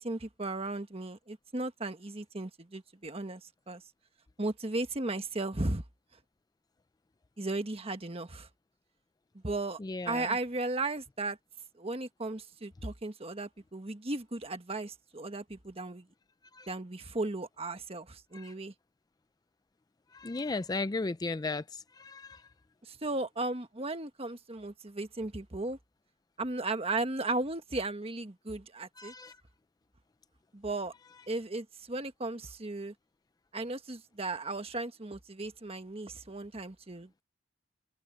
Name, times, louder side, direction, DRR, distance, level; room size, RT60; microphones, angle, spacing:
voice 1, 0.0-3.8 4.4-5.8 7.4-8.5 9.3-9.8 10.0-11.4 11.7-16.1 16.7-18.7 22.8-25.8 26.4-29.1 30.5-30.9 31.3-32.9 33.5-37.2, right 2 dB, 30° right, 1.4 m, -36 dB
voice 2, 9.8-10.3 16.5-16.7 18.3-18.5 20.1-22.4 29.0-29.4, left 3 dB, 20° left, 0.4 m, -36 dB
head